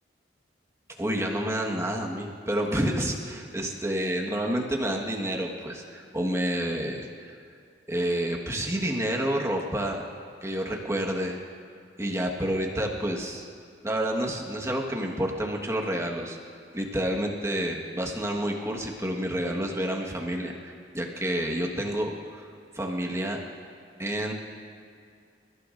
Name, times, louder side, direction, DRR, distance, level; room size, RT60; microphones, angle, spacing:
voice 1, 1.0-7.3 7.9-10.1 10.4-11.4 12.0-13.5 13.8-16.4 16.7-22.5 22.7-23.4 24.0-24.3, right 1 dB, 15° right, 0 dB, 1.4 m, -29 dB
28.5 x 15.0 x 2.6 m, 2.3 s
head